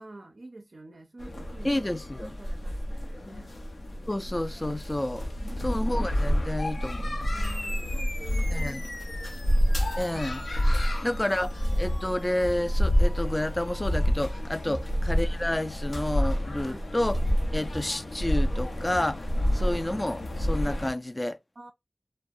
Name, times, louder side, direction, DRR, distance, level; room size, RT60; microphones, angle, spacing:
voice 1, 0.0-1.9 2.2-3.5 5.4-5.8 7.3-10.2 10.8-11.1 14.6-14.9 16.6-17.0 21.6-21.7, right 2 dB, 70° right, 0.4 m, -48 dB
sound 1, 1.2-20.9, equal, 85° left, 0.5 m, -28 dB
voice 2, 1.6-2.4 4.1-5.3 5.6-7.3 8.5-8.8 10.0-10.4 11.0-17.2 17.5-19.3 19.5-21.4, left 1 dB, 30° left, 0.3 m, -30 dB
sound 2, 7.4-16.3, left 1 dB, 60° left, 0.9 m, -45 dB
sound 3, 14.7-15.0 15.9-16.2 17.1-17.4 17.7-18.0 18.3-18.6 18.9-19.2, right 1 dB, 20° right, 0.7 m, -38 dB
2.3 x 2.1 x 2.5 m
wide cardioid pair, 50°, 0 cm